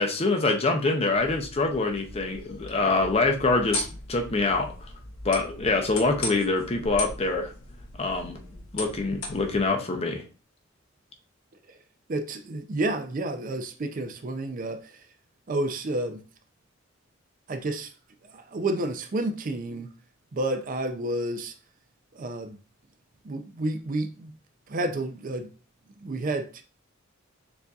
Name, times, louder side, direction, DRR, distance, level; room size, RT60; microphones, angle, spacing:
voice 1, 0.0-4.9 5.2-7.5 8.0-8.4 8.7-10.2, left 3 dB, 30° left, 0.6 m, -25 dB
sound 1, 1.1-9.7, left 2 dB, 85° left, 0.9 m, -38 dB
voice 2, 12.1-15.1 15.5-16.2 17.5-17.9 18.3-19.9 20.3-21.5 22.1-22.6 23.2-24.3 24.7-25.5 26.0-26.6, right 2 dB, 40° right, 0.4 m, -30 dB
6.8 x 2.6 x 2.3 m
head